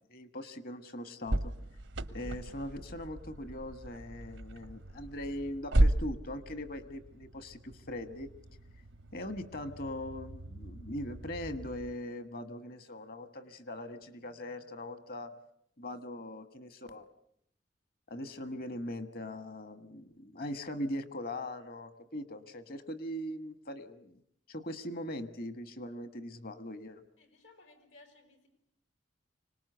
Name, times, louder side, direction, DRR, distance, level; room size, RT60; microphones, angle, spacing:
voice 1, 0.1-1.5 2.1-8.3 9.1-15.3 15.8-17.1 18.1-24.2 24.5-27.0, left 1 dB, 50° left, 11 dB, 1.5 m, -41 dB
sound 1, 1.3-11.9, right 1 dB, 85° right, 1.0 m, -35 dB
voice 2, 27.2-28.5, left 2 dB, 85° left, 7 dB, 4.6 m, -59 dB
25.5 x 19.5 x 8.0 m, 0.70 s
head